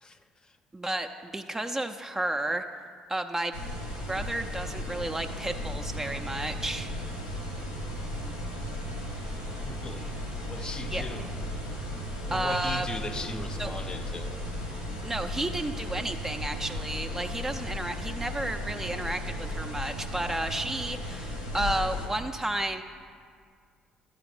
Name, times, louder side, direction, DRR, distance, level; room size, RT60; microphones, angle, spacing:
voice 1, 0.0-0.6 9.6-10.2 10.5-11.4 12.3-14.5, left 2 dB, 25° left, 8 dB, 0.6 m, -38 dB
voice 2, 0.7-2.6 3.1-3.6 4.1-6.9 10.9-11.0 12.3-12.9 13.6-13.7 15.0-22.8, right 1 dB, 15° right, 6 dB, 0.4 m, -32 dB
sound 1, 3.5-22.1, left 1 dB, 90° left, 1.2 m, -35 dB
11.5 x 5.0 x 4.8 m, 2.1 s
figure-of-eight pair, 50°, 3 cm